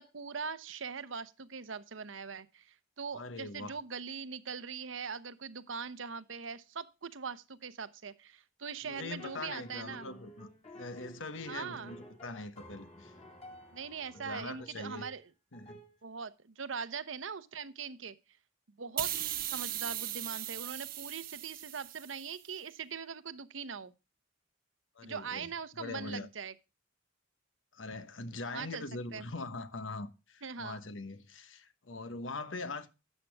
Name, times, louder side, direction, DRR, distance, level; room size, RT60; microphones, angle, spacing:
voice 1, 0.0-10.1 11.5-11.9 13.7-15.3 16.0-18.2 18.8-19.1 19.5-23.9 25.0-26.5 28.5-28.8 29.1-29.3 30.4-30.8, right 6 dB, 90° right, 0.9 m, -41 dB
voice 2, 3.1-3.8 8.8-10.5 10.7-13.1 14.1-15.1 15.5-15.8 24.9-25.5 25.8-26.3 27.7-32.9, left 3 dB, 85° left, 1.2 m, -42 dB
sound 1, 8.9-15.2 15.5-15.9, equal, 35° left, 2.4 m, -52 dB
sound 2, 19.0-22.4, right 12 dB, 50° right, 1.0 m, -38 dB
12.5 x 8.3 x 3.4 m
head